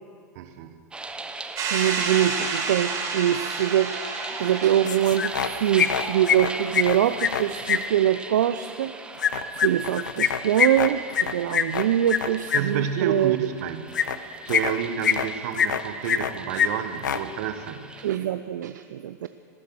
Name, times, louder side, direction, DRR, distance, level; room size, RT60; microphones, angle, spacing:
voice 1, 0.3-0.8 12.5-17.9, right 8 dB, 60° right, 10 dB, 1.1 m, -30 dB
sound 1, 0.9-18.1, right 3 dB, 10° right, 1.0 m, -39 dB
sound 2, 1.5-6.4, right 4 dB, 40° right, 2.4 m, -31 dB
voice 2, 1.7-4.0 4.4-9.1 9.5-13.5 18.0-19.3, right 11 dB, 75° right, 11 dB, 0.5 m, -24 dB
sound 3, 4.9-5.5 5.8-7.8 9.2-12.6 13.9-14.2 14.5-15.3 15.5-16.3 16.6-16.7 17.0-17.2, left 8 dB, 85° left, 0.7 m, -23 dB
18.5 x 10.5 x 6.3 m, 2.4 s
hypercardioid pair, 105°, 10 cm